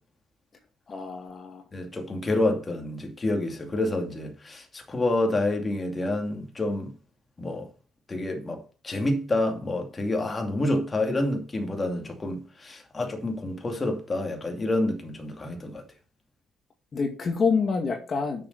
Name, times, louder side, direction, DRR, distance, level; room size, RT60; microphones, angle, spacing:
voice 1, 0.9-1.6 16.9-18.5, left 5 dB, 45° left, 2.2 m, -27 dB
voice 2, 1.7-6.9 7.4-7.7 8.1-15.8, left 2 dB, 25° left, 2.6 m, -28 dB
8.7 x 6.9 x 6.7 m
cardioid pair, 90°, 0 cm